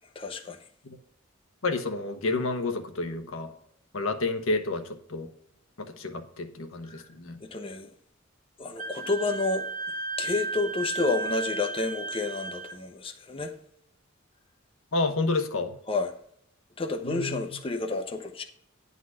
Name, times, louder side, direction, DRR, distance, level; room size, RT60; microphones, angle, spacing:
voice 1, 0.2-0.6 6.9-7.0 7.4-7.9 8.6-9.7 10.2-13.5 15.9-16.1 16.8-18.4, left 3 dB, 25° left, 0.7 m, -30 dB
voice 2, 1.6-3.5 3.9-5.3 5.8-7.4 14.9-15.7 17.0-17.4, left 3 dB, 85° left, 1.1 m, -30 dB
Wind instrument woodwind instrument, 8.8-12.7, right 4 dB, 40° right, 0.9 m, -34 dB
9.8 x 4.0 x 6.3 m
head